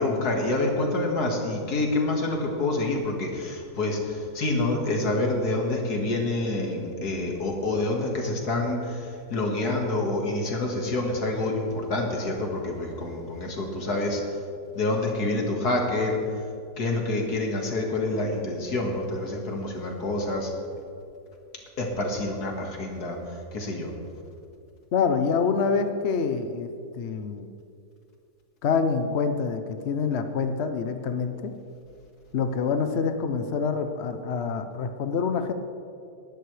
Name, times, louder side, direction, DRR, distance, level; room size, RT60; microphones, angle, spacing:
voice 1, 0.0-14.2 14.7-16.2 16.8-20.5 21.8-23.2 23.5-23.9, left 2 dB, 75° left, 1 dB, 2.3 m, -27 dB
voice 2, 24.9-27.5 28.6-31.5 32.3-35.5, left 5 dB, 55° left, 8 dB, 0.8 m, -26 dB
19.5 x 11.5 x 3.3 m, 2.5 s
omnidirectional pair, 1.7 m